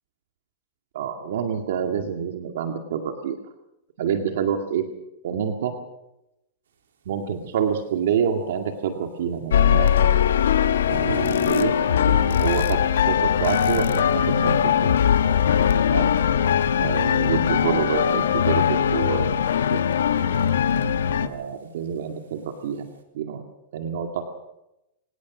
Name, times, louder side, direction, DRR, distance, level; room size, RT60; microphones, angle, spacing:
voice 1, 0.9-3.4 4.0-4.9 5.2-5.7 7.1-10.1 11.4-11.7 12.4-15.0 15.9-16.1 16.8-19.3 19.7-20.0 21.2-22.9 23.1-23.4 23.7-24.2, right 7 dB, 70° right, 5 dB, 2.1 m, -27 dB
sound 1, 9.5-21.3, left 8 dB, 90° left, 1.2 m, -20 dB
sound 2, 10.9-21.0 22.5-22.7, right 5 dB, 90° right, 3.7 m, -38 dB
24.5 x 18.5 x 6.1 m, 0.89 s
hypercardioid pair, 135°, 0 cm